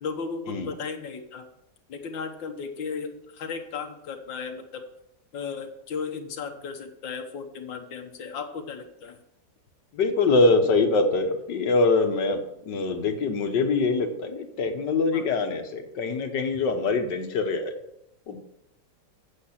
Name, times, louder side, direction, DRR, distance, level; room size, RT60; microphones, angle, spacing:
voice 1, 0.0-1.4 1.9-4.8 5.3-9.2 15.1-15.3, left 5 dB, 90° left, 6 dB, 1.8 m, -35 dB
voice 2, 9.9-17.7 18.3-18.4, left 3 dB, 70° left, 6 dB, 1.7 m, -24 dB
8.7 x 7.4 x 5.8 m, 0.81 s
omnidirectional pair, 2.0 m